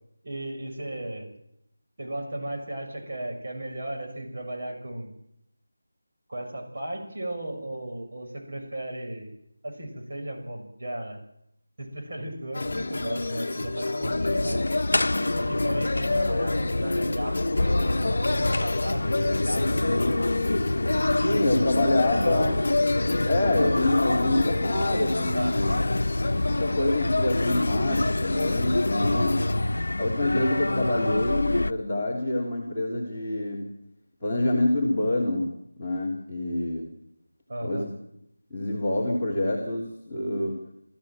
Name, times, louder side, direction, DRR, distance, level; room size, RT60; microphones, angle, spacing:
voice 1, 0.2-1.3 2.0-5.1 6.3-9.3 9.6-11.2 11.8-14.6 15.4-20.3 21.5-22.6 25.3-25.6 29.0-29.2 37.5-37.9, right 1 dB, 40° right, 1 dB, 6.6 m, -35 dB
sound 1, 12.5-29.6, left 2 dB, 45° left, 1.3 m, -29 dB
sound 2, 14.0-31.7, left 2 dB, 80° left, 0.8 m, -27 dB
voice 2, 21.1-22.6 23.2-25.8 26.4-29.4 30.0-33.7 34.2-35.5 35.8-36.9 37.6-37.9 38.5-40.6, left 1 dB, 5° left, -10 dB, 3.3 m, -26 dB
29.0 x 15.0 x 7.7 m, 0.77 s
figure-of-eight pair, 175°, 0 cm